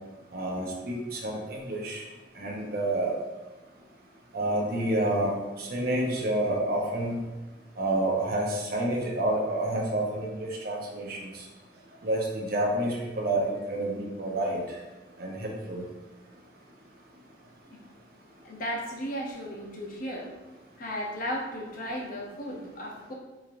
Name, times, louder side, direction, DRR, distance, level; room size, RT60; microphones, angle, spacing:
voice 1, 0.3-2.0 2.3-3.1 4.3-7.2 7.8-11.4 12.0-14.8 15.2-15.8, right 1 dB, 60° right, -1 dB, 0.8 m, -29 dB
voice 2, 18.4-20.3 20.8-23.1, equal, 50° left, -1 dB, 0.7 m, -35 dB
3.9 x 3.0 x 2.5 m, 1.1 s
head